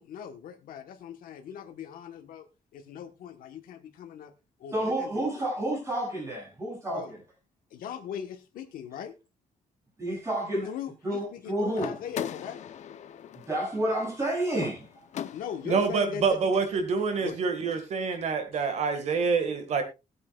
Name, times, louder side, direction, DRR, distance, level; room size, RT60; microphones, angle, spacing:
voice 1, 0.0-2.5 2.7-4.3 4.6-5.2 6.9-7.1 7.7-9.2 10.7-12.6 15.3-16.4 17.2-17.4 18.5-18.7, left 8 dB, 85° left, 1.3 m, -40 dB
voice 2, 4.7-7.2 10.0-10.7 11.0-11.9 13.3-14.9, right 1 dB, 20° right, 7.5 m, -30 dB
sound 1, 11.7-15.8, left 9 dB, 55° left, 0.7 m, -39 dB
voice 3, 15.7-19.8, right 5 dB, 55° right, 1.8 m, -26 dB
19.5 x 8.3 x 2.4 m
cardioid pair, 160°, 14 cm